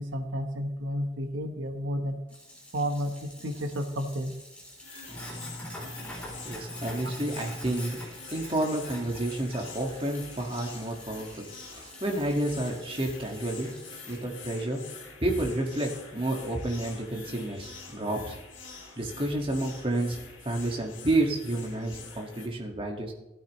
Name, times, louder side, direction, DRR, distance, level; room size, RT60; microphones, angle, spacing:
voice 1, 0.0-2.2 2.7-4.3, equal, 85° right, 5 dB, 1.2 m, -31 dB
Sink (filling or washing), 2.3-14.2, left 1 dB, 5° left, 3.7 m, -44 dB
sound 1, 4.8-22.5, left 4 dB, 80° left, 2.6 m, -46 dB
voice 2, 6.4-8.0 8.3-11.5 11.8-13.7 14.1-14.8 15.2-18.4 19.0-20.2 20.4-23.1, right 1 dB, 30° right, 0 dB, 2.0 m, -30 dB
16.0 x 13.0 x 3.2 m, 0.98 s
head